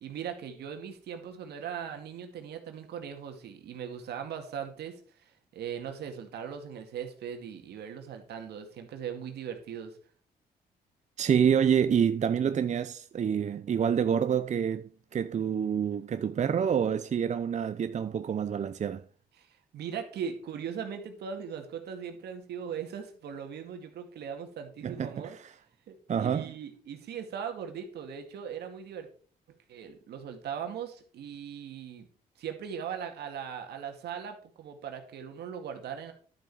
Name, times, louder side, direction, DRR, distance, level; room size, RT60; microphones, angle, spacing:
voice 1, 0.0-10.0 19.4-19.5 19.7-25.4 25.9-29.1 29.7-32.1 32.4-36.1, right 8 dB, 80° right, 2.2 m, -39 dB
voice 2, 11.2-19.0 24.8-25.5 26.1-26.5, right 8 dB, 45° right, 0.6 m, -27 dB
11.5 x 7.0 x 4.8 m
cardioid pair, 75°, 17 cm